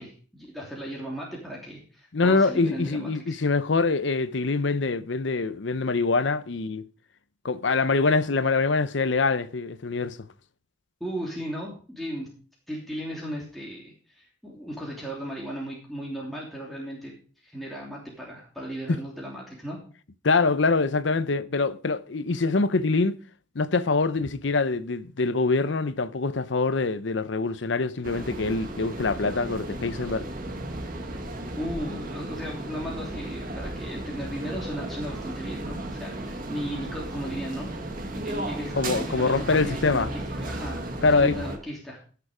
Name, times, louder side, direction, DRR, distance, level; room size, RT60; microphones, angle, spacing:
voice 1, 0.0-3.4 11.0-12.3 12.7-17.1 17.4-19.8 31.6-37.7 38.2-42.0, equal, ahead, 3.0 m, -36 dB
voice 2, 2.1-6.9 7.4-10.2 18.9-19.0 20.2-23.2 23.5-30.3 38.7-40.1 41.0-41.4, left 3 dB, 70° left, 0.7 m, -24 dB
sound 1, 28.0-41.6, right 1 dB, 50° right, 1.8 m, -35 dB
16.0 x 6.8 x 5.0 m
head